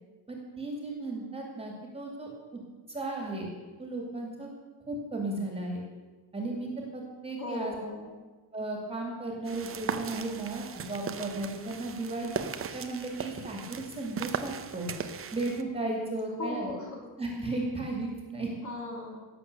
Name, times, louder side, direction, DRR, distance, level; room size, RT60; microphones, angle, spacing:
voice 1, 0.3-2.6 2.9-3.5 3.8-4.5 4.9-5.8 6.3-7.7 8.5-12.5 12.7-14.9 15.3-16.7 17.2-18.5, right 2 dB, 10° right, 0 dB, 2.4 m, -35 dB
voice 2, 7.4-8.1 16.4-17.1 18.6-19.2, left 2 dB, 40° left, 0 dB, 3.0 m, -37 dB
sound 1, 9.4-15.6, right 7 dB, 30° right, 0.7 m, -38 dB
18.0 x 7.6 x 6.8 m, 1.3 s
cardioid pair, 170°, 46 cm